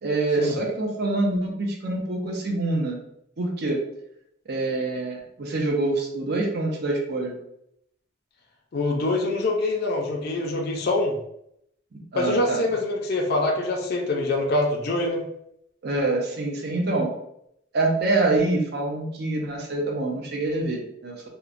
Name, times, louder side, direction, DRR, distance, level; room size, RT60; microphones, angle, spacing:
voice 1, 0.0-3.0 3.4-3.8 4.5-7.4 11.9-12.6 15.8-17.1 17.7-21.2, right 2 dB, 55° right, 0 dB, 0.5 m, -25 dB
voice 2, 8.7-11.2 12.2-15.2, left 2 dB, 50° left, 0 dB, 0.4 m, -24 dB
2.9 x 2.1 x 2.4 m, 0.76 s
head